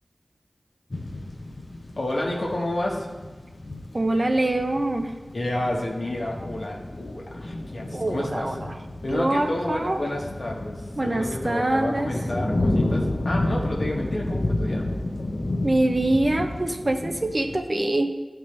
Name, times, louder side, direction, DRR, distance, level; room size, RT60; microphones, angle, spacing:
sound 1, 0.9-17.6, left 1 dB, 55° left, 0.9 m, -31 dB
voice 1, 2.0-3.1 5.3-8.6 9.0-14.9, left 1 dB, 75° left, -1 dB, 1.4 m, -30 dB
voice 2, 3.9-5.1 7.9-8.6 9.1-10.0 11.0-12.1 15.6-18.1, right 1 dB, 45° right, 5 dB, 0.7 m, -24 dB
12.0 x 4.5 x 3.3 m, 1.3 s
cardioid pair, 40°, 0 cm